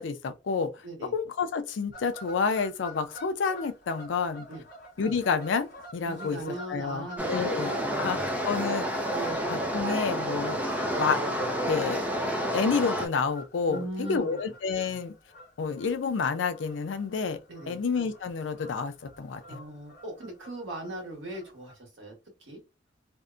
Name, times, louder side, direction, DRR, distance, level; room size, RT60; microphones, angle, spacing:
voice 1, 0.0-0.7 1.0-4.5 5.0-5.7 5.9-9.1 9.5-10.6 11.0-11.2 11.7-12.0 12.5-15.1 15.6-17.4 17.7-19.6, left 5 dB, 75° left, 0.4 m, -29 dB
voice 2, 0.8-1.1 4.5-4.6 6.0-8.3 9.1-9.4 13.7-14.5 17.5-17.8 19.5-22.1 22.4-22.6, right 1 dB, 75° right, 1.2 m, -39 dB
Fowl / Bird vocalization bird call bird song, 1.9-21.8, left 1 dB, 50° left, 0.9 m, -49 dB
sound 1, 7.2-13.1, equal, 10° right, 0.5 m, -29 dB
2.6 x 2.1 x 2.4 m
head